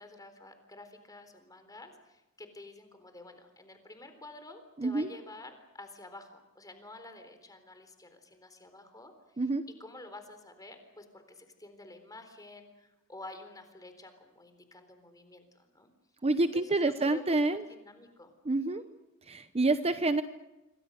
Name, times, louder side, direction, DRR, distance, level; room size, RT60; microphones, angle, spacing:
voice 1, 0.0-9.5 9.8-15.9 16.5-17.2 17.5-18.9, left 2 dB, 15° left, 7 dB, 3.9 m, -50 dB
voice 2, 4.8-5.1 9.4-9.6 16.2-17.6 18.5-18.8 19.3-20.2, right 2 dB, 30° right, 10 dB, 0.8 m, -27 dB
27.0 x 25.0 x 6.5 m, 1.0 s
head